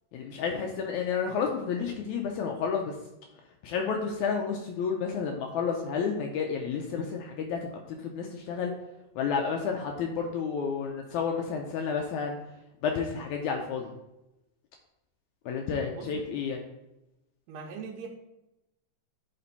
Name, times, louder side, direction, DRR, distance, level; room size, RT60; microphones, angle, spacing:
voice 1, 0.1-3.0 3.6-8.7 9.2-12.4 12.8-13.9 15.5-16.6, left 6 dB, 80° left, 2 dB, 1.8 m, -31 dB
voice 2, 15.9-16.3 17.5-18.1, right 5 dB, 90° right, 0 dB, 2.3 m, -41 dB
8.7 x 3.3 x 4.0 m, 0.92 s
omnidirectional pair, 3.9 m